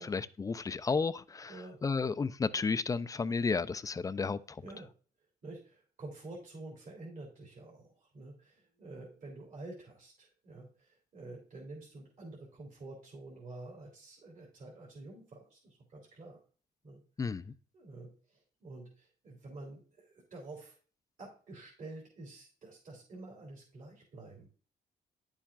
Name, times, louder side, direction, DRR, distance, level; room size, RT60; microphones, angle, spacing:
voice 1, 0.0-1.5 1.8-4.4 17.2-17.4, left 4 dB, 20° left, 0.3 m, -32 dB
voice 2, 5.4-16.4 16.8-17.0 17.7-20.7 21.2-24.5, right 2 dB, 55° right, 3.1 m, -49 dB
10.0 x 7.1 x 2.4 m
cardioid pair, 120°, 16 cm